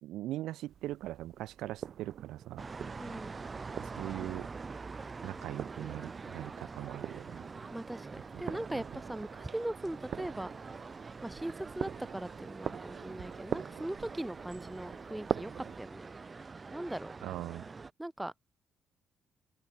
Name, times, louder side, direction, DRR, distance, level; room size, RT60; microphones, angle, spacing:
voice 1, 0.0-2.6 2.9-3.1 3.8-4.5 5.2-7.4 8.3-8.4 17.2-17.7, right 15 dB, 90° right, 1.9 m, -41 dB
sound 1, 0.7-15.8, right 9 dB, 60° right, 1.6 m, -44 dB
sound 2, 2.6-17.9, right 4 dB, 30° right, 3.0 m, -45 dB
voice 2, 3.0-3.3 7.7-10.5 11.2-16.0 16.7-17.1 18.0-18.3, right 1 dB, 10° right, 5.6 m, -40 dB
open air
cardioid pair, 90°, 0 cm